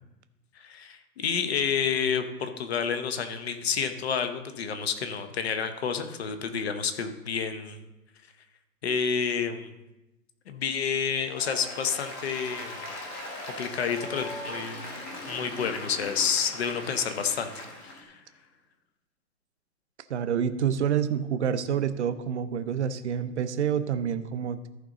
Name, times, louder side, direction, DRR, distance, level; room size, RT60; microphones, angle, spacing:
voice 1, 0.6-7.8 8.8-9.7 10.5-12.8 13.6-14.9 15.3-18.2, left 6 dB, 40° left, 8 dB, 1.0 m, -29 dB
Applause, 11.2-18.0, left 1 dB, 10° left, 0.9 m, -40 dB
Motorcycle, 13.8-18.4, left 3 dB, 55° left, 3.3 m, -48 dB
voice 2, 20.1-24.7, right 8 dB, 45° right, 11 dB, 0.7 m, -28 dB
14.0 x 5.3 x 3.8 m, 0.97 s
hypercardioid pair, 160°, 50 cm